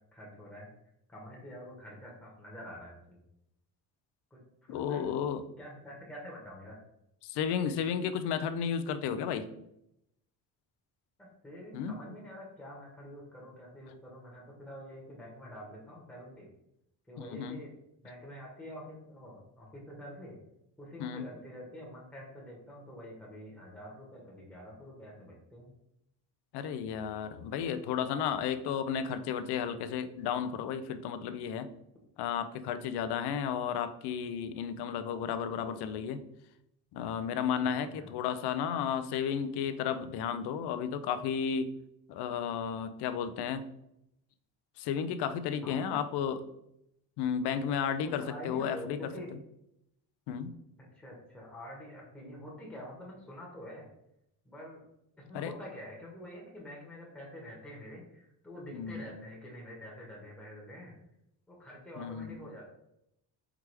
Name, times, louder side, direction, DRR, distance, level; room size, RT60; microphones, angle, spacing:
voice 1, 0.1-0.7 1.1-3.2 4.3-5.0 5.6-6.8 11.2-16.5 17.1-20.3 20.8-25.7 37.9-38.1 45.6-45.9 48.0-49.3 50.9-53.9 54.4-54.8 55.2-60.9 61.5-62.7, equal, 5° left, -4 dB, 1.2 m, -47 dB
voice 2, 4.7-5.4 7.2-9.5 11.7-12.0 17.2-17.6 21.0-21.3 26.5-31.7 32.2-36.2 36.9-41.7 42.1-43.6 44.8-46.4 47.2-49.0 50.3-50.5 55.3-55.5 58.7-59.1 62.0-62.4, left 7 dB, 80° left, 11 dB, 0.5 m, -33 dB
4.8 x 3.3 x 3.3 m, 0.81 s
cardioid pair, 125°, 40 cm